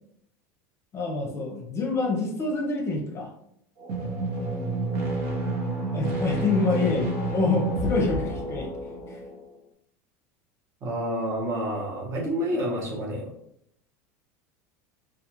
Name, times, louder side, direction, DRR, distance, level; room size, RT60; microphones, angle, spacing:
voice 1, 0.9-3.3 5.9-8.7 9.1-9.2, left 3 dB, 35° left, 0 dB, 0.7 m, -27 dB
sound 1, 3.8-9.4, right 2 dB, 55° right, 1.0 m, -29 dB
voice 2, 10.8-13.3, equal, 35° right, -3 dB, 1.0 m, -29 dB
2.3 x 2.3 x 2.9 m, 0.73 s
hypercardioid pair, 100°, 8 cm